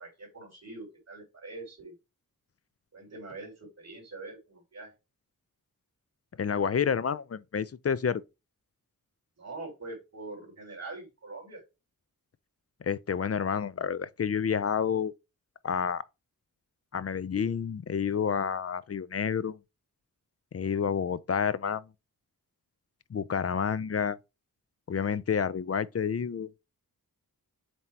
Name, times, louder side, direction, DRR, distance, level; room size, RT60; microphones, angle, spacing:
voice 1, 0.0-1.9 2.9-4.9 9.4-11.6, right 3 dB, 45° right, 3.5 m, -43 dB
voice 2, 6.4-8.2 12.8-15.1 15.6-16.0 16.9-19.6 20.5-21.9 23.1-24.2 24.9-26.5, left 7 dB, 45° left, 0.4 m, -29 dB
7.5 x 2.8 x 4.5 m
wide cardioid pair, 95°, 36 cm